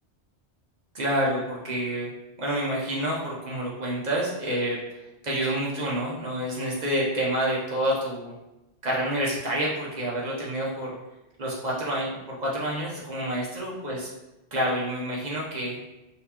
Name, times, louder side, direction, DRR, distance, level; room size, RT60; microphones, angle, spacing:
voice 1, 0.9-2.1 2.4-4.8 5.2-8.3 8.8-11.0 11.4-14.1 14.5-15.8, right 1 dB, 45° right, -4 dB, 0.6 m, -28 dB
4.0 x 2.2 x 2.8 m, 0.98 s
omnidirectional pair, 1.2 m